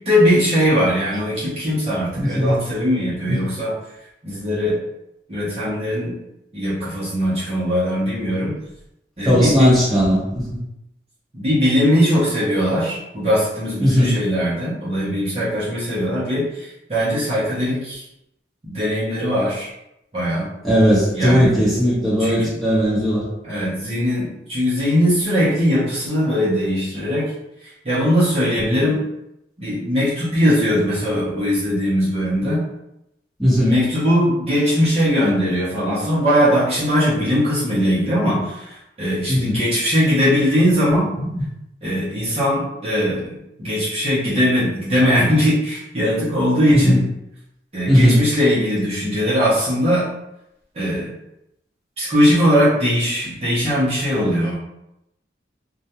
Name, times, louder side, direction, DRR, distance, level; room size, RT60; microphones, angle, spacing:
voice 1, 0.1-3.7 4.2-4.8 5.3-6.2 6.5-8.5 9.2-9.7 11.3-18.0 18.6-19.7 20.1-20.5 21.1-21.5 22.2-22.6 23.4-27.3 27.6-29.0 29.6-32.6 33.5-41.1 41.8-47.0 47.7-50.1 50.8-51.1 52.0-54.5, equal, 35° right, -9 dB, 0.6 m, -20 dB
voice 2, 2.1-2.6 3.3-3.4 9.2-10.6 13.8-14.2 20.6-23.3 33.4-33.8 39.3-39.6 41.3-41.4 46.7-47.0 47.9-48.2, equal, ahead, -10 dB, 0.8 m, -17 dB
2.3 x 2.1 x 2.8 m, 0.84 s
head